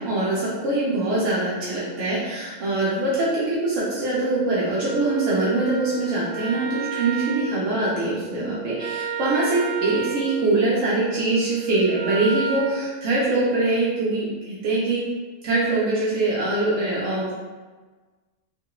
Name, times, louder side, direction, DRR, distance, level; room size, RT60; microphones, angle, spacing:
voice 1, 0.0-15.0 15.4-17.3, right 2 dB, 85° right, -8 dB, 1.1 m, -23 dB
Wind instrument woodwind instrument, 4.8-12.8, right 5 dB, 25° left, 1.0 m, -32 dB
2.8 x 2.3 x 2.9 m, 1.3 s
omnidirectional pair, 1.3 m